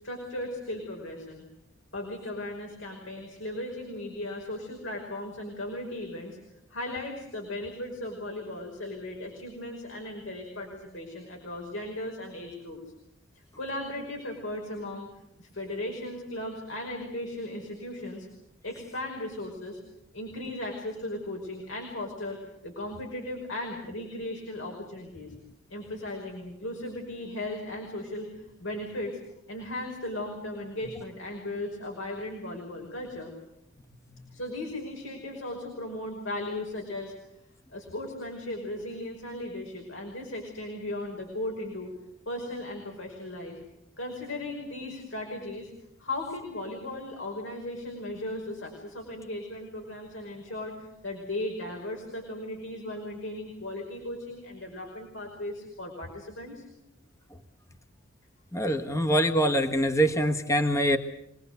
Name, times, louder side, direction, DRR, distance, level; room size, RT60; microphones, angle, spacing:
voice 1, 0.0-1.4 1.9-6.4 6.7-12.8 13.6-15.1 15.4-18.3 18.6-19.8 20.1-25.3 25.7-29.2 29.5-33.3 34.3-37.1 37.7-41.9 42.3-43.6 44.0-45.7 46.0-56.6, left 1 dB, 85° left, 0 dB, 5.5 m, -37 dB
voice 2, 58.5-61.0, equal, 15° left, 4 dB, 1.5 m, -24 dB
26.0 x 20.0 x 8.2 m, 0.82 s
head